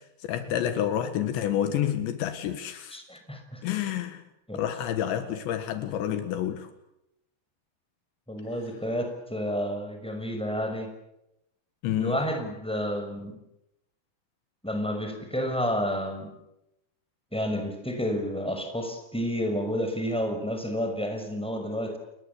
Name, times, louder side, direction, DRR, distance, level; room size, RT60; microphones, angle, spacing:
voice 1, 0.0-3.0 3.6-4.2 4.5-6.7 11.8-12.2, left 10 dB, 80° left, 3.8 m, -29 dB
voice 2, 2.9-3.6 4.5-4.6 8.3-10.9 12.0-13.4 14.6-16.3 17.3-22.0, equal, ahead, 5.5 m, -30 dB
29.5 x 21.0 x 8.3 m
omnidirectional pair, 5.1 m